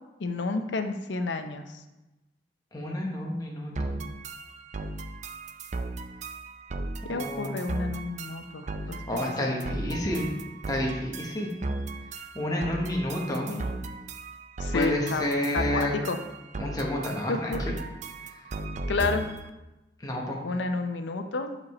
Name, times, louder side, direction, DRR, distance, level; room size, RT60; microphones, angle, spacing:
voice 1, 0.2-1.6 7.0-9.0 9.5-10.0 13.5-13.7 14.6-15.2 15.5-16.2 17.3-17.7 18.9-19.3 20.4-21.5, left 3 dB, 90° left, 7 dB, 0.6 m, -30 dB
voice 2, 2.7-4.0 7.1-7.6 9.1-10.2 10.7-11.5 12.3-13.5 14.7-16.0 16.6-17.5 20.0-20.4, left 1 dB, 20° left, -2 dB, 1.0 m, -30 dB
sound 1, 3.8-19.5, right 2 dB, 40° right, 0.4 m, -36 dB
6.3 x 5.1 x 4.2 m, 1.0 s
head